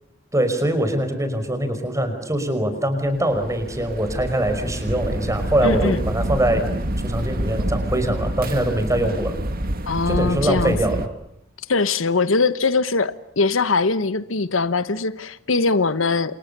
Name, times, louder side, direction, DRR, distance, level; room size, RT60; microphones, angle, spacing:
voice 1, 0.3-6.6 7.0-9.4 10.1-11.1, right 1 dB, 15° right, 5.2 m, -23 dB
sound 1, 3.1-11.1, right 1 dB, 50° right, 1.9 m, -27 dB
voice 2, 5.6-6.0 9.9-10.8 11.7-16.3, left 3 dB, 80° left, 1.1 m, -21 dB
30.0 x 28.0 x 6.8 m
head